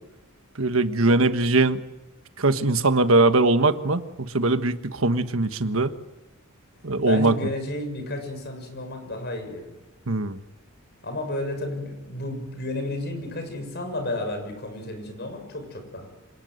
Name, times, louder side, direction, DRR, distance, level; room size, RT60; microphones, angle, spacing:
voice 1, 0.6-1.8 2.4-5.9 6.8-7.4 10.1-10.4, right 2 dB, 70° right, 9 dB, 1.4 m, -21 dB
voice 2, 7.1-9.7 11.0-16.1, left 1 dB, 50° left, 5 dB, 6.7 m, -32 dB
26.5 x 19.0 x 7.9 m, 1.0 s
head